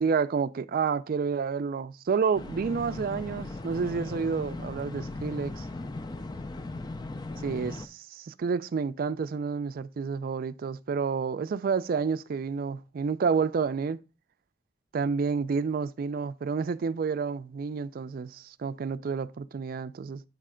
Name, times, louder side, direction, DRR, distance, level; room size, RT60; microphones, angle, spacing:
voice 1, 0.0-5.7 7.4-14.0 14.9-20.2, right 5 dB, 50° right, 0.3 m, -29 dB
sound 1, 2.3-7.9, left 2 dB, 20° left, 0.4 m, -38 dB
8.3 x 3.2 x 4.9 m
head